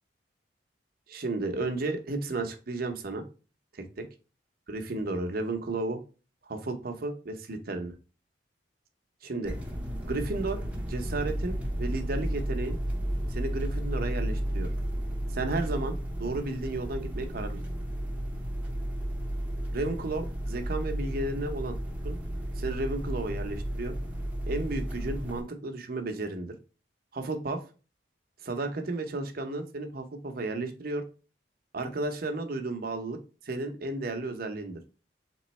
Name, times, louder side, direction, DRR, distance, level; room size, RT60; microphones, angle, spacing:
voice 1, 1.1-3.2 3.7-4.0 4.7-6.0 6.4-7.9 9.2-9.5 10.0-10.6 10.9-12.8 13.3-14.7 15.3-17.6 19.7-21.8 22.0-22.2 22.6-23.9 24.5-26.5 27.1-27.6 28.4-31.0 31.7-33.2 33.4-34.8, right 2 dB, 55° right, 5 dB, 0.8 m, -33 dB
sound 1, 9.4-25.4, right 1 dB, 10° right, 0.7 m, -33 dB
3.8 x 3.0 x 4.2 m, 0.34 s
head